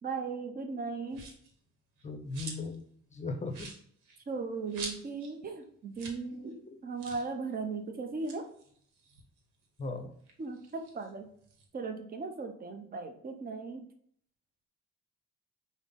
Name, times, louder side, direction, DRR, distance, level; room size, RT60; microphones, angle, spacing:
voice 1, 0.0-1.2 4.3-8.5 10.4-11.3 11.7-13.9, right 4 dB, 30° right, 6 dB, 0.7 m, -37 dB
sound 1, 1.1-1.5 2.0-2.8 3.1-3.2 3.5-5.3 5.6-5.7 5.9-6.2 6.5-6.6 7.0-7.3 8.1-9.8 10.2-11.7, right 4 dB, 80° right, 1.0 m, -46 dB
voice 2, 2.0-2.8 3.1-3.7 6.7-6.8 9.8-10.1, left 3 dB, 25° left, 5 dB, 0.7 m, -37 dB
5.2 x 2.1 x 3.7 m, 0.63 s
cardioid pair, 90°, 30 cm